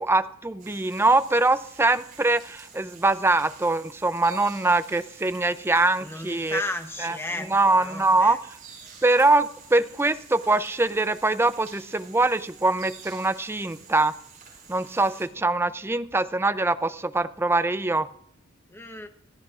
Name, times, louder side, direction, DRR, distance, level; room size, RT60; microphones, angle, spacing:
voice 1, 0.0-6.6 7.0-7.1 7.5-8.4 9.0-14.1 14.7-18.1, right 2 dB, 10° right, 13 dB, 0.4 m, -23 dB
sound 1, 0.6-15.3, right 6 dB, 40° right, 6.3 m, -49 dB
voice 2, 6.0-8.4 18.7-19.1, left 1 dB, 10° left, 7 dB, 0.9 m, -34 dB
25.0 x 13.5 x 2.5 m, 0.69 s
head